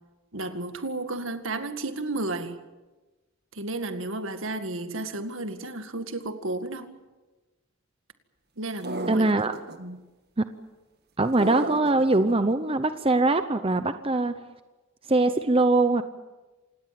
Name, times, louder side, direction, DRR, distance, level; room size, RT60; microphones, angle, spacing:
voice 1, 0.3-2.6 3.5-6.9 8.6-9.3 9.8-10.0, right 2 dB, 70° right, 2.0 m, -32 dB
sound 1, 8.8-9.8 11.4-12.3, right 2 dB, 50° right, 1.8 m, -34 dB
voice 2, 9.1-9.6 10.4-10.5 11.2-14.3 15.1-16.0, right 2 dB, 25° right, 0.8 m, -22 dB
27.5 x 19.5 x 7.7 m
head